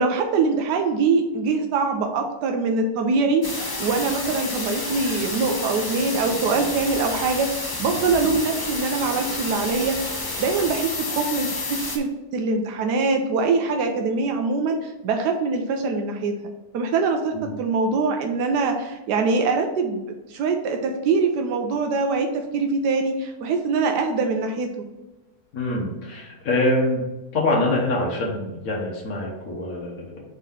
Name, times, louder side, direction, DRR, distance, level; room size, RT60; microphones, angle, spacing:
voice 1, 0.0-16.3 16.7-17.3 17.6-24.7, right 4 dB, 90° right, 4 dB, 1.3 m, -23 dB
sound 1, 3.4-12.0, left 2 dB, 30° left, 0.4 m, -30 dB
voice 2, 25.5-27.1 27.3-30.2, left 2 dB, 65° left, -2 dB, 1.5 m, -24 dB
4.6 x 4.0 x 5.4 m, 1.0 s
omnidirectional pair, 1.7 m